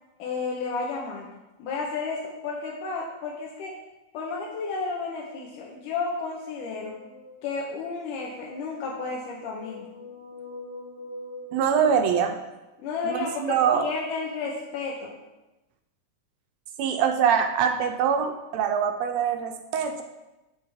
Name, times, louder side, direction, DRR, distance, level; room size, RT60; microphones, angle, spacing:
voice 1, 0.2-1.3 1.6-3.7 4.1-7.0 7.4-9.9 12.8-15.1, left 4 dB, 85° left, -2 dB, 2.5 m, -32 dB
sound 1, 6.4-8.0 8.8-12.7, left 2 dB, 35° left, 2.5 m, -44 dB
voice 2, 11.5-12.4 13.0-13.9 16.8-20.0, right 7 dB, 80° right, 5 dB, 1.6 m, -24 dB
13.5 x 4.8 x 3.5 m, 1.0 s
omnidirectional pair, 3.5 m